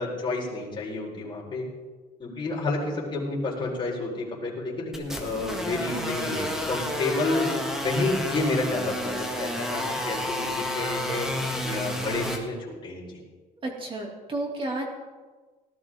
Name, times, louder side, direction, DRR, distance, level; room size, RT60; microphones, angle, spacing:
voice 1, 0.0-1.7 2.2-7.5 7.8-11.3 11.6-13.2, left 2 dB, 30° left, -4 dB, 4.5 m, -30 dB
sound 1, 4.9-12.4, equal, 5° right, 1.8 m, -31 dB
voice 2, 13.6-14.9, right 2 dB, 30° right, 1 dB, 2.7 m, -31 dB
18.5 x 12.5 x 3.7 m, 1.3 s
cardioid pair, 140°, 16 cm